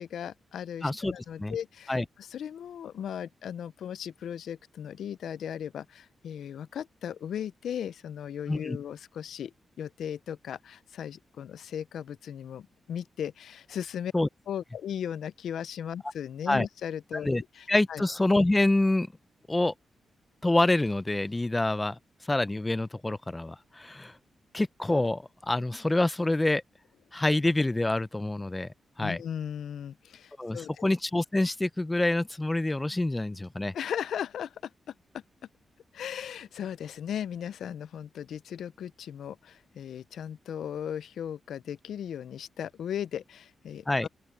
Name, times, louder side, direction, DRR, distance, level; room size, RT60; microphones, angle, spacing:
voice 1, 0.0-14.1 14.5-17.3 17.6-18.0 29.0-30.7 33.7-34.7 35.1-35.2 35.9-44.1, left 9 dB, 90° left, 0.4 m, -37 dB
voice 2, 0.8-1.1 1.4-1.6 1.9-2.1 8.5-8.8 14.1-14.3 16.5-16.7 17.2-17.4 17.7-19.1 19.5-19.7 20.4-22.0 22.3-24.2 24.5-26.6 27.1-29.2 30.4-33.7 43.9-44.1, left 2 dB, 15° left, 0.5 m, -26 dB
open air
wide cardioid pair, 130°, 0 cm